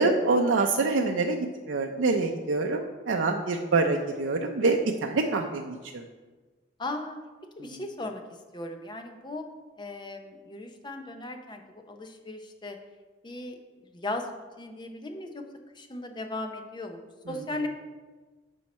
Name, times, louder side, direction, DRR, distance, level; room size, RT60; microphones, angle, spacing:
voice 1, 0.0-1.4 1.7-6.0 7.7-7.8, right 3 dB, 80° right, 2 dB, 0.5 m, -25 dB
voice 2, 6.8-7.2 7.6-8.2 8.5-9.5 9.8-12.8 13.2-13.6 13.9-14.3 14.6-15.4 15.8-17.7, left 2 dB, 25° left, 5 dB, 0.7 m, -37 dB
12.0 x 4.6 x 4.2 m, 1.3 s
head